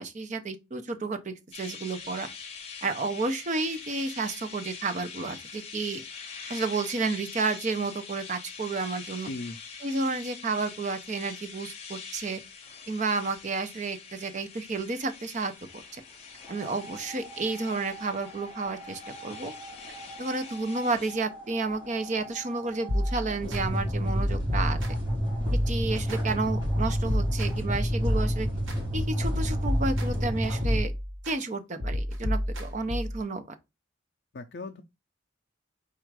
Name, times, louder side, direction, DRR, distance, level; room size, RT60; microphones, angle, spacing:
voice 1, 0.0-2.3 2.8-6.0 6.5-9.3 9.8-12.4 12.9-16.0 16.5-19.5 20.2-24.8 25.7-28.5 28.9-30.9 31.2-33.4, right 3 dB, 40° right, 0.5 m, -31 dB
sound 1, 1.5-21.1, left 6 dB, 30° left, 0.8 m, -44 dB
voice 2, 9.3-9.6 34.3-34.8, left 2 dB, 50° left, 0.4 m, -37 dB
sound 2, 16.4-30.8, equal, 15° right, 2.9 m, -32 dB
sound 3, 22.9-23.6 24.1-25.1 25.5-26.2 26.6-28.8 29.2-30.3 30.6-31.4 31.8-33.2, equal, 80° right, 1.0 m, -30 dB
4.4 x 2.4 x 4.6 m
head